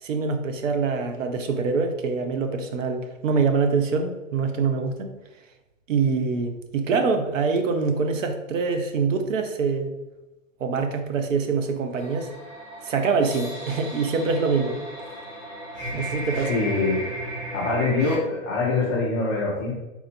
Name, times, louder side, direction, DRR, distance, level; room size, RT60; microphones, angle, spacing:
voice 1, 0.0-5.1 5.9-9.9 10.6-12.3 12.8-14.8 15.9-16.5, right 4 dB, 70° right, 6 dB, 0.9 m, -24 dB
sound 1, 11.9-18.2, right 1 dB, 10° right, 0.8 m, -35 dB
voice 2, 16.3-17.0 17.5-19.7, left 3 dB, 15° left, -4 dB, 0.4 m, -24 dB
4.3 x 2.7 x 4.3 m, 1.0 s
hypercardioid pair, 145°, 39 cm